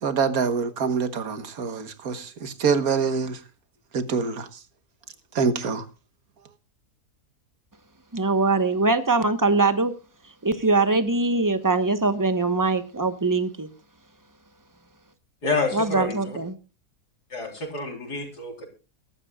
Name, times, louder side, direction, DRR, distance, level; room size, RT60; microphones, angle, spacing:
voice 1, 0.0-3.4 3.9-4.5 5.3-5.8, right 5 dB, 65° right, 1.8 m, -25 dB
voice 2, 8.1-9.9 10.4-13.7 15.7-16.6, right 3 dB, 15° right, 1.0 m, -22 dB
voice 3, 15.4-16.4 17.3-18.7, left 3 dB, 90° left, 4.5 m, -28 dB
23.0 x 12.0 x 2.4 m
omnidirectional pair, 1.7 m